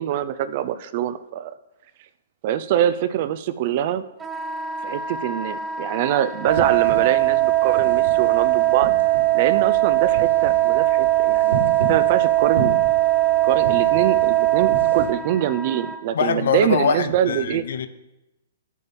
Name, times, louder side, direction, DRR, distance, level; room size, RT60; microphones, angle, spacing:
voice 1, 0.0-1.5 2.4-4.0 4.8-8.9 9.3-11.6 11.9-12.8 13.4-17.6, right 11 dB, 45° right, 13 dB, 0.6 m, -24 dB
Wind instrument woodwind instrument, 4.2-16.0, right 1 dB, 10° right, 0.8 m, -34 dB
sound 1, 6.5-15.1, right 16 dB, 90° right, 3.7 m, -19 dB
voice 2, 16.1-17.9, left 7 dB, 70° left, 12 dB, 0.8 m, -23 dB
8.5 x 8.4 x 5.3 m, 0.96 s
hypercardioid pair, 140°, 0 cm